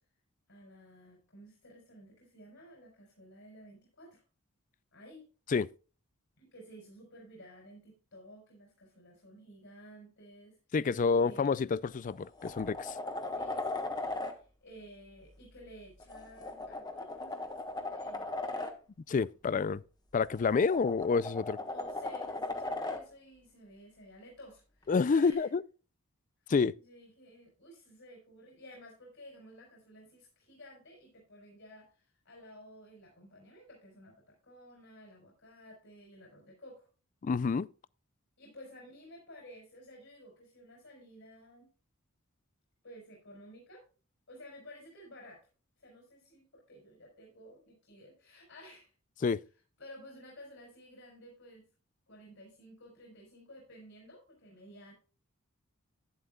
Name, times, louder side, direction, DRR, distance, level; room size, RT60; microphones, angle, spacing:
voice 1, 0.5-4.2 4.9-5.3 6.4-10.6 11.2-11.6 13.3-18.7 21.6-25.5 26.5-36.9 38.4-41.7 42.8-43.8 44.3-45.4 45.8-48.9 49.8-51.7 52.1-54.9, equal, 65° left, 4.5 m, -54 dB
voice 2, 10.7-13.0 19.1-19.8 20.1-21.6 24.9-25.6 26.5-26.7 37.2-37.7 49.2-49.4, left 5 dB, 40° left, 0.3 m, -28 dB
sound 1, 11.5-11.6 12.1-14.3 16.0-18.7 20.2-23.0 25.3-25.4, left 2 dB, 20° left, 1.2 m, -38 dB
11.5 x 10.0 x 2.3 m
head